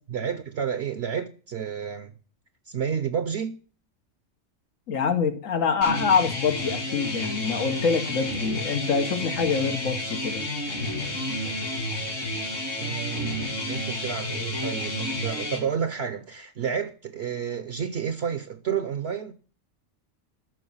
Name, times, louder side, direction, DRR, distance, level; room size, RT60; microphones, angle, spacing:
voice 1, 0.1-2.2 2.7-3.6 12.8-19.3, right 7 dB, 60° right, 0.8 m, -30 dB
voice 2, 4.9-10.4, left 5 dB, 85° left, 1.5 m, -25 dB
sound 1, 5.8-15.6, left 1 dB, 70° left, 3.3 m, -31 dB
13.0 x 6.1 x 5.6 m
omnidirectional pair, 1.3 m